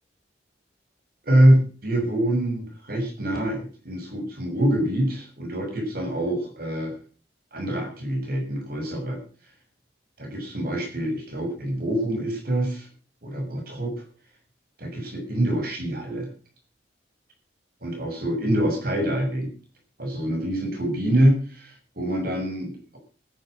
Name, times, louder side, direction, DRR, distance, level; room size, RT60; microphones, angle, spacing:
voice 1, 1.2-6.9 7.5-9.2 10.2-12.9 13.2-13.9 14.8-16.3 17.8-19.5 20.0-23.0, right 1 dB, 55° right, 3 dB, 6.8 m, -25 dB
13.5 x 11.5 x 6.4 m, 0.40 s
head